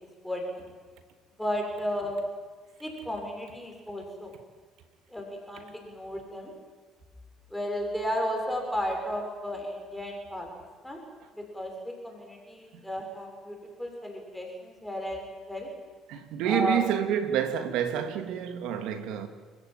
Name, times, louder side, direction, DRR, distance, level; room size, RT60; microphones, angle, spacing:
voice 1, 0.2-0.6 1.3-2.3 2.8-4.3 5.1-6.5 7.5-10.5 10.8-11.0 11.3-15.7 16.4-16.8, equal, 5° left, 6.9 m, -34 dB
voice 2, 16.1-19.3, right 9 dB, 75° right, 2.7 m, -28 dB
30.0 x 15.0 x 9.3 m
supercardioid pair, 70°, 0 cm